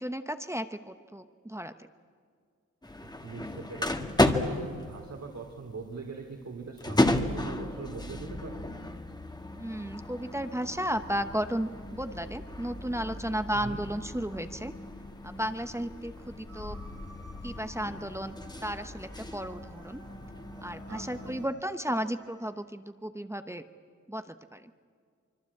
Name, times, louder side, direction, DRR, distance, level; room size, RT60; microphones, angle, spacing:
voice 1, 0.0-1.7 9.6-14.7 15.2-16.8 17.4-20.0 20.6-23.6 24.1-24.7, equal, 10° right, 9 dB, 1.0 m, -34 dB
sound 1, 2.8-21.5, left 1 dB, 15° left, 1.7 m, -34 dB
voice 2, 3.2-4.1 4.4-8.6 13.5-13.8 20.9-21.4, right 4 dB, 65° right, 0 dB, 3.2 m, -42 dB
sound 2, 10.8-20.3, left 3 dB, 30° left, 1.7 m, -50 dB
sound 3, 16.5-22.5, right 2 dB, 90° right, 7.3 m, -55 dB
25.5 x 24.5 x 8.5 m, 2.1 s
wide cardioid pair, 105°, 30 cm